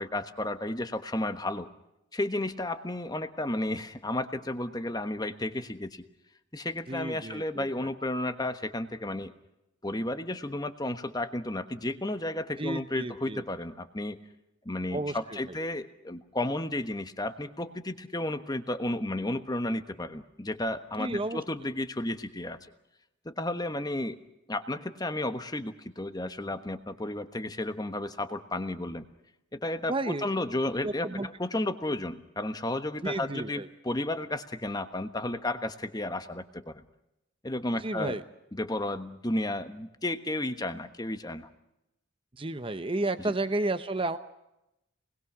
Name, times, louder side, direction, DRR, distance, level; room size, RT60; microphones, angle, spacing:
voice 1, 0.0-1.7 2.1-6.0 6.5-9.3 9.8-14.2 14.6-22.6 23.2-24.2 24.5-29.0 29.5-36.8 37.4-38.2 38.5-41.5, left 1 dB, 20° left, 9 dB, 1.2 m, -33 dB
voice 2, 6.9-7.7 12.6-13.4 14.9-15.4 21.0-21.4 29.9-30.2 30.8-31.3 33.0-33.7 37.8-38.2 42.3-44.2, right 2 dB, 25° right, 10 dB, 0.8 m, -32 dB
27.5 x 21.0 x 6.1 m, 0.88 s
head